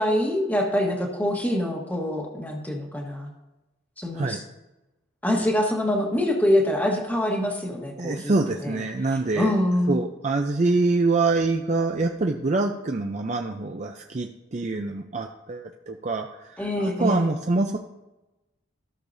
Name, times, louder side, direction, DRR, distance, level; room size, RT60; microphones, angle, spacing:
voice 1, 0.0-3.3 4.0-4.4 5.2-8.8 9.4-10.0 16.6-17.3, left 1 dB, 10° left, 0 dB, 1.3 m, -25 dB
voice 2, 8.0-9.5 9.9-16.7 17.0-17.8, right 3 dB, 35° right, 4 dB, 0.5 m, -25 dB
15.0 x 6.5 x 2.7 m, 0.99 s
head